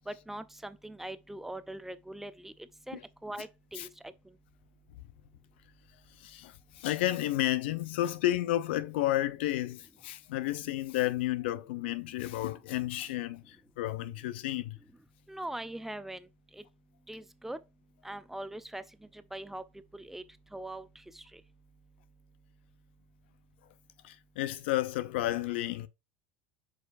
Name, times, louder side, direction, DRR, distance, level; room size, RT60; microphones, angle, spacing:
voice 1, 0.1-2.5 2.9-4.1 15.3-16.3 16.5-16.6 17.1-17.6 18.0-18.8 19.1-19.6 19.9-20.2 20.5-20.9 21.1-21.4, right 1 dB, 5° right, 0.6 m, -41 dB
voice 2, 6.2-14.8 24.0-25.9, left 14 dB, 80° left, 0.7 m, -32 dB
7.7 x 4.9 x 2.6 m
supercardioid pair, 110°, 6 cm